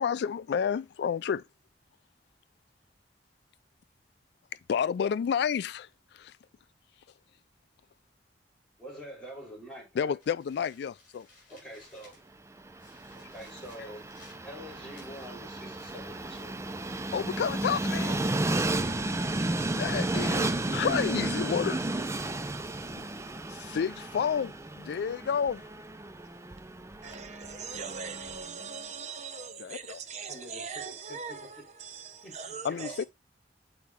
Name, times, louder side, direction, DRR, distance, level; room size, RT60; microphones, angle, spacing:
voice 1, 0.0-1.4 4.7-5.9 6.1-6.3 10.0-11.3 17.1-18.2 19.8-21.8 23.0-23.1 23.5-25.6 29.6-30.0 32.6-33.0, left 7 dB, 65° left, 0.3 m, -30 dB
voice 2, 8.8-10.2 11.5-12.2 13.1-14.0 14.4-16.5 20.6-21.4 30.3-31.4 32.2-33.1, equal, 5° left, 3.8 m, -46 dB
sound 1, 10.2-12.4 12.8-17.1, left 2 dB, 50° left, 4.5 m, -60 dB
Train, 12.6-28.6, right 2 dB, 15° right, 0.5 m, -33 dB
voice 3, 27.0-33.0, right 5 dB, 40° right, 0.8 m, -41 dB
7.9 x 4.3 x 3.5 m
head